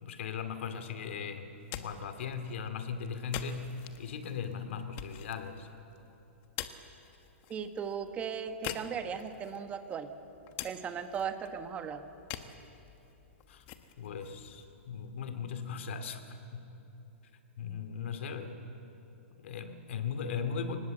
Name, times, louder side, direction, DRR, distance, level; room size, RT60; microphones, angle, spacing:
voice 1, 0.0-3.7 4.0-5.7 13.5-13.6 14.0-16.7 17.6-18.6 19.3-20.8, left 6 dB, 65° left, 8 dB, 2.4 m, -38 dB
sound 1, 1.4-15.4, left 11 dB, 35° left, 1.2 m, -47 dB
voice 2, 7.5-10.1 10.6-12.0, right 7 dB, 20° right, 8 dB, 1.4 m, -37 dB
26.0 x 19.5 x 7.8 m, 2.9 s
hypercardioid pair, 150°, 7 cm